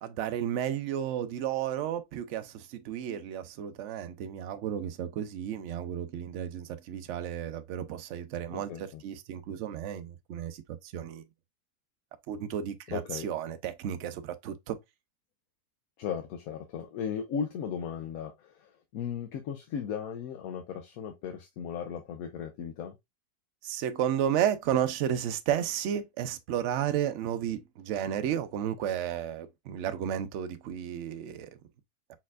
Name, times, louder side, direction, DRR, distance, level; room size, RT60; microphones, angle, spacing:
voice 1, 0.0-11.2 12.3-14.8 23.6-31.5, right 10 dB, 65° right, 0.7 m, -32 dB
voice 2, 8.5-9.0 12.9-13.3 16.0-23.0, left 7 dB, 70° left, 1.0 m, -36 dB
4.3 x 4.2 x 2.4 m
omnidirectional pair, 1.7 m